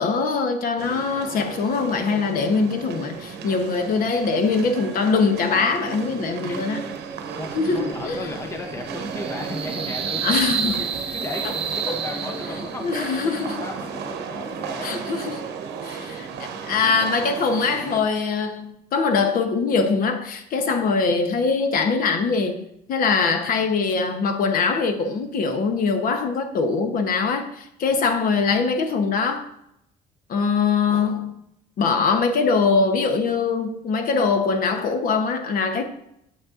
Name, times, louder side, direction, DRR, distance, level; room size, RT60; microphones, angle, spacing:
voice 1, 0.0-6.8 7.5-8.2 10.2-10.8 12.8-13.6 14.8-15.4 15.8-29.4 30.3-31.3 31.8-35.8, left 4 dB, 60° left, 0.9 m, -22 dB
sound 1, 0.8-18.0, right 5 dB, 75° right, 0.8 m, -34 dB
sound 2, 7.0-12.9, right 7 dB, 35° right, 0.8 m, -31 dB
voice 2, 7.4-15.0 15.2-15.3 15.6-15.7 20.7-20.8 27.9-28.1, left 2 dB, 15° left, 0.7 m, -36 dB
7.9 x 6.3 x 2.5 m
cardioid pair, 110°, 17 cm